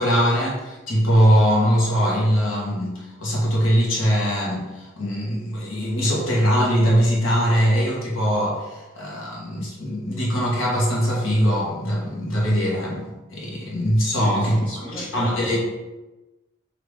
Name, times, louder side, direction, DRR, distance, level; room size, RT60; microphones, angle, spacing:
voice 1, 0.0-14.6 15.0-15.6, equal, 85° left, -4 dB, 1.3 m, -21 dB
voice 2, 14.1-15.6, equal, 5° left, -9 dB, 1.2 m, -35 dB
5.3 x 2.8 x 3.2 m, 1.1 s
head